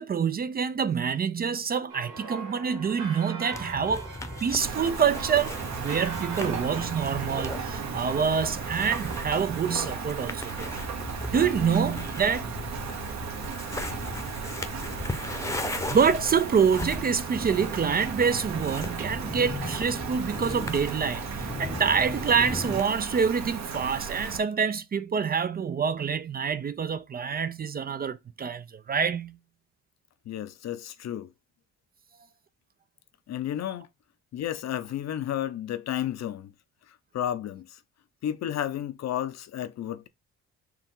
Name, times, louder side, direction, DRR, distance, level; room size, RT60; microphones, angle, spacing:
voice 1, 0.0-4.1 4.4-10.7 11.3-12.5 15.0-15.3 15.9-29.4, right 6 dB, 30° right, 0.4 m, -26 dB
sound 1, 1.9-8.2, right 4 dB, 85° right, 2.3 m, -41 dB
sound 2, 3.5-22.8, left 2 dB, 10° left, 0.8 m, -37 dB
Rain, 4.6-24.4, right 6 dB, 65° right, 1.2 m, -36 dB
voice 2, 6.4-6.8 11.6-12.0 30.3-31.3 33.3-33.9 34.3-36.5 36.9-37.8 38.2-40.1, left 11 dB, 60° left, 0.7 m, -32 dB
4.6 x 2.9 x 3.7 m
cardioid pair, 90°, 30 cm